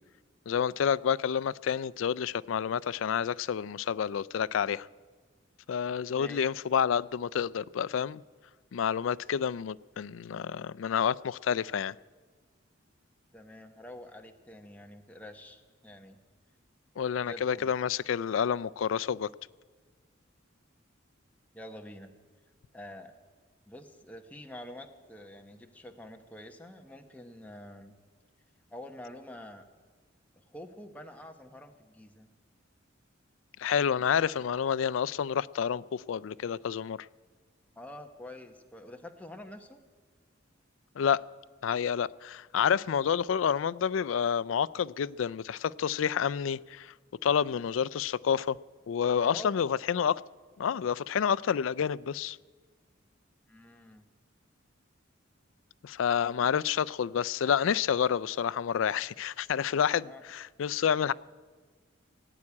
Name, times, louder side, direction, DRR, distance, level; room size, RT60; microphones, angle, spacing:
voice 1, 0.5-4.9 5.7-8.2 8.7-11.9 17.0-19.3 33.6-37.0 41.0-41.2 41.6-46.9 47.2-48.6 48.9-50.2 50.6-52.4 55.8-61.1, left 7 dB, 75° left, 0.4 m, -29 dB
voice 2, 6.1-6.5 13.3-16.2 17.2-17.7 21.5-22.1 22.7-23.1 23.7-27.9 28.7-29.6 30.4-32.3 34.0-34.1 37.8-39.8 49.1-49.7 53.5-54.1 60.0-60.2, left 1 dB, 5° left, 0.9 m, -47 dB
16.5 x 8.6 x 9.7 m
head